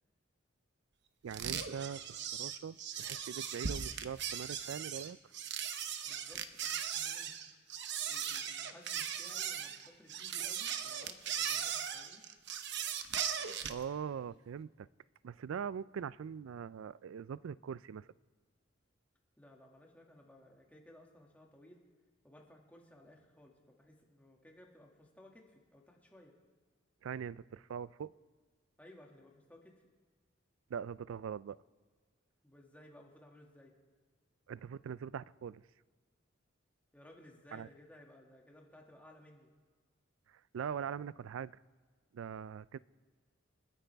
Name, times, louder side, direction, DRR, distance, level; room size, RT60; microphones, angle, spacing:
voice 1, 1.2-5.2 13.7-14.9 15.2-18.1 27.0-28.1 30.7-31.6 34.5-35.6 37.5-37.7 40.3-41.5 42.1-42.8, right 7 dB, 85° right, 20 dB, 0.3 m, -42 dB
sound 1, 1.3-13.8, right 8 dB, 60° right, 0.9 m, -38 dB
voice 2, 6.0-7.6 8.1-12.2 19.4-21.8 22.2-26.3 28.8-29.7 32.4-33.7 36.9-39.5, left 1 dB, 10° left, -1 dB, 2.1 m, -59 dB
29.0 x 10.0 x 3.4 m, 1.5 s
head